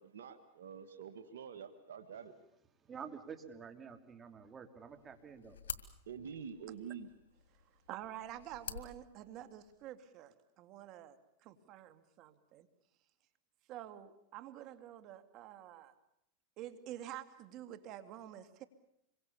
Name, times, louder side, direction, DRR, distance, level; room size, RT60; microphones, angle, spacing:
voice 1, 0.0-2.3 6.1-7.1, right 7 dB, 80° right, 7 dB, 1.8 m, -47 dB
voice 2, 2.8-5.6, right 6 dB, 25° right, 7 dB, 3.0 m, -49 dB
sound 1, 4.9-9.9, left 7 dB, 85° left, 2.0 m, -50 dB
voice 3, 7.9-12.7 13.7-15.9 16.6-18.6, right 12 dB, 45° right, 10 dB, 2.3 m, -49 dB
27.0 x 23.5 x 7.1 m, 0.78 s
hypercardioid pair, 115°, 0 cm